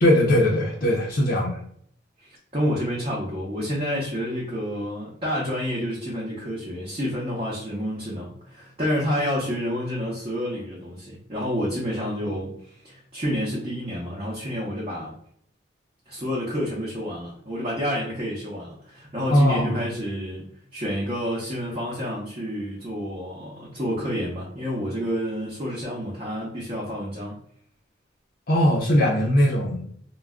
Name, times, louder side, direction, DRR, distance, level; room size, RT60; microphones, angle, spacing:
voice 1, 0.0-1.6 19.3-19.8 28.5-29.8, equal, 50° left, -4 dB, 0.6 m, -20 dB
voice 2, 2.2-15.1 16.1-20.4 20.7-27.4, equal, 30° right, -5 dB, 0.6 m, -29 dB
2.3 x 2.1 x 3.5 m, 0.64 s
head